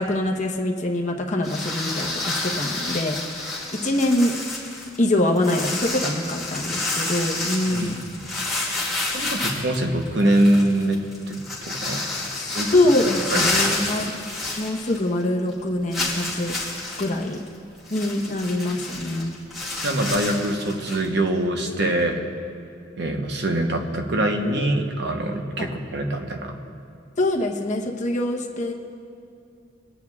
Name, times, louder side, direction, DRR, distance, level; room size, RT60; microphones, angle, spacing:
voice 1, 0.0-3.2 3.8-4.4 5.0-8.0 12.4-14.1 14.6-16.5 17.0-17.4 17.9-19.4 27.2-28.7, left 1 dB, 40° left, 1 dB, 0.9 m, -24 dB
sound 1, 1.4-15.2 15.5-15.6 15.9-21.1, left 2 dB, ahead, 1.9 m, -29 dB
voice 2, 7.7-8.2 9.1-11.4 11.7-12.0 12.5-12.7 13.3-13.5 19.8-22.2 23.0-26.5, right 1 dB, 65° right, 3 dB, 1.0 m, -23 dB
25.0 x 9.1 x 2.4 m, 2.4 s
head